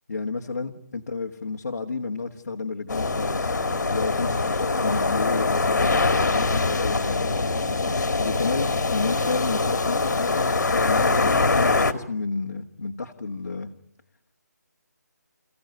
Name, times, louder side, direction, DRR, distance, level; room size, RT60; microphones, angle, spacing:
voice 1, 0.1-3.5 3.9-7.3 8.2-13.7, left 4 dB, 55° left, 1 dB, 1.5 m, -31 dB
sound 1, 2.9-11.9, left 3 dB, 75° left, 1.9 m, -23 dB
29.0 x 15.0 x 9.3 m, 0.74 s
hypercardioid pair, 180°, 10 cm